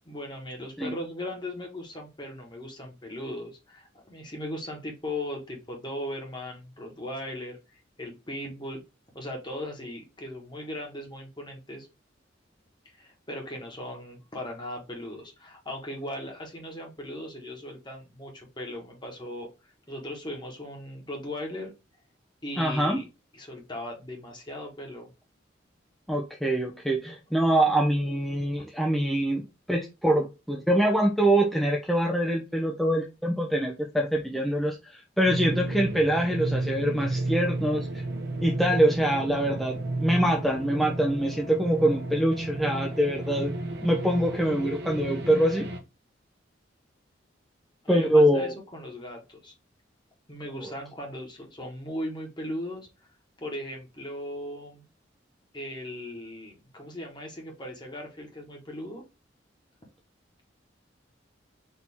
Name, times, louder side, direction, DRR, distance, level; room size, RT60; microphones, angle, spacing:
voice 1, 0.0-8.8 9.1-11.9 12.9-19.5 19.9-21.7 22.4-23.1 23.3-25.1 47.8-49.5 50.3-52.9 53.4-54.8 55.5-59.0, left 1 dB, 25° left, 1 dB, 1.2 m, -38 dB
voice 2, 22.6-23.0 26.1-29.4 29.7-38.0 38.4-43.5 43.8-45.7 47.9-48.5, right 1 dB, ahead, 0 dB, 0.5 m, -24 dB
sound 1, 35.3-45.8, right 2 dB, 55° right, 0.8 m, -32 dB
4.4 x 2.7 x 3.4 m, 0.27 s
head